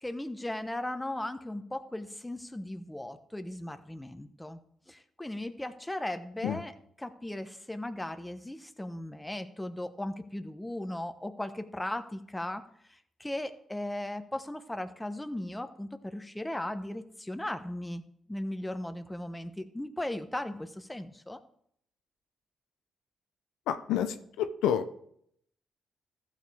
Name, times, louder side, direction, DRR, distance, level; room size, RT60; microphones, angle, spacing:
voice 1, 0.0-4.6 4.9-12.6 12.9-18.0 18.3-21.4, left 1 dB, 10° left, 9 dB, 1.1 m, -37 dB
voice 2, 23.7-24.9, left 9 dB, 80° left, 9 dB, 0.5 m, -29 dB
14.5 x 6.7 x 3.5 m, 0.69 s
hypercardioid pair, 45°, 0 cm